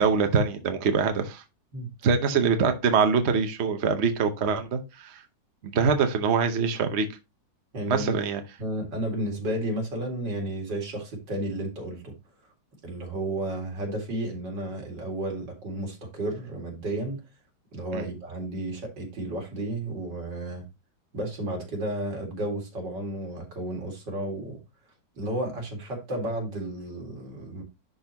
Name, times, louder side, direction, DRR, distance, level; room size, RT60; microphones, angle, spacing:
voice 1, 0.0-1.4 2.0-5.2 5.6-7.1 7.9-8.4 17.9-18.1, right 5 dB, 50° right, 0.9 m, -24 dB
voice 2, 7.7-8.1 8.6-12.1 12.8-17.2 17.7-20.7 21.1-24.6 25.2-27.6, right 1 dB, 75° right, 2.8 m, -32 dB
11.0 x 4.1 x 2.9 m
omnidirectional pair, 1.9 m